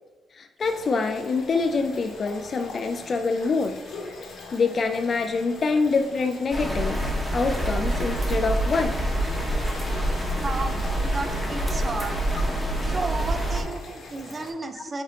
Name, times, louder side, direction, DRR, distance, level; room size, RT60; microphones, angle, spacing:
voice 1, 0.3-3.8 4.5-7.0 7.3-8.9 14.8-14.9, left 4 dB, 45° left, 6 dB, 0.3 m, -25 dB
sound 1, 0.6-14.5, left 3 dB, 60° left, 0.9 m, -42 dB
Soft Rain Loop, 6.5-13.6, right 1 dB, 5° right, 1.2 m, -26 dB
voice 2, 10.4-12.3 12.9-15.0, right 3 dB, 30° right, 7 dB, 0.5 m, -33 dB
4.3 x 3.3 x 3.7 m, 1.2 s
cardioid pair, 90°, 0 cm